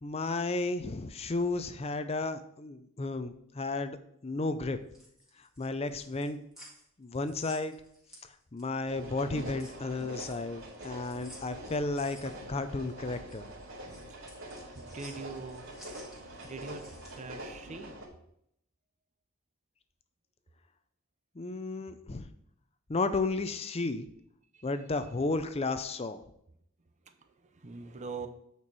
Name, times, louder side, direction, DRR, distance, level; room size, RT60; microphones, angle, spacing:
voice 1, 0.0-4.0 4.2-4.8 5.4-6.4 7.0-7.8 8.5-13.5 21.4-22.3 22.9-24.1 24.6-26.2, left 3 dB, 25° left, 11 dB, 0.5 m, -33 dB
sound 1, 4.7-8.8 9.2-17.3, equal, ahead, 1.9 m, -55 dB
sound 2, 8.9-18.1, right 1 dB, 65° right, 2.6 m, -45 dB
voice 2, 14.7-15.7 16.1-16.9 17.1-18.0 24.5-24.7 25.0-25.1 27.1-28.3, right 4 dB, 30° right, 7 dB, 0.6 m, -43 dB
8.5 x 4.6 x 4.7 m, 0.73 s
head